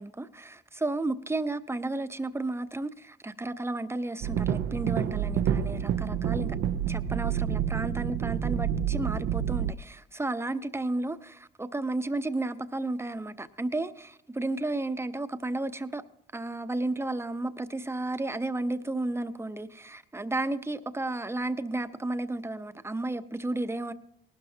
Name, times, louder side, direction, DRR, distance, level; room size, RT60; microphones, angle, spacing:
voice 1, 0.0-6.6 6.9-16.0 16.3-23.9, right 2 dB, 10° right, 0.8 m, -33 dB
sound 1, 4.2-9.7, right 9 dB, 75° right, 0.6 m, -28 dB
19.0 x 12.5 x 2.8 m
cardioid pair, 90°, 20 cm